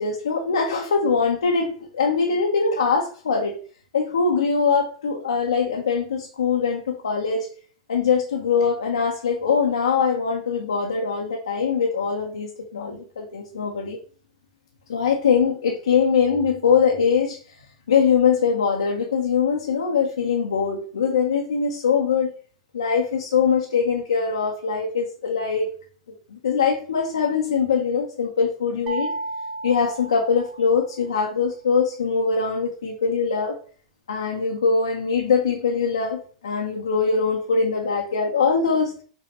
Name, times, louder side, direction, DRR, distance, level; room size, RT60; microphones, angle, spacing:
voice 1, 0.0-3.5 3.9-7.5 7.9-14.0 14.9-17.4 17.9-22.3 22.7-25.7 26.3-29.2 29.6-33.6 34.1-38.9, left 5 dB, 85° left, 0.8 m, -22 dB
sound 1, 28.9-31.0, right 2 dB, 35° right, 1.2 m, -33 dB
5.4 x 3.1 x 3.0 m
hypercardioid pair, 100°, 3 cm